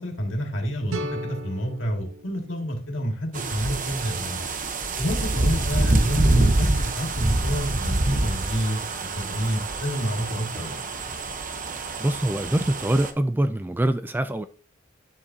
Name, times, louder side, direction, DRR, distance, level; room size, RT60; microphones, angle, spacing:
voice 1, 0.0-4.5 5.0-10.8, equal, 65° left, 2.2 m, -28 dB
sound 1, 0.9-3.8, right 1 dB, 80° right, 0.9 m, -37 dB
sound 2, 3.3-13.1, right 2 dB, 40° right, 0.9 m, -26 dB
voice 2, 12.0-14.5, right 1 dB, 10° right, 0.3 m, -24 dB
9.2 x 7.4 x 2.8 m
head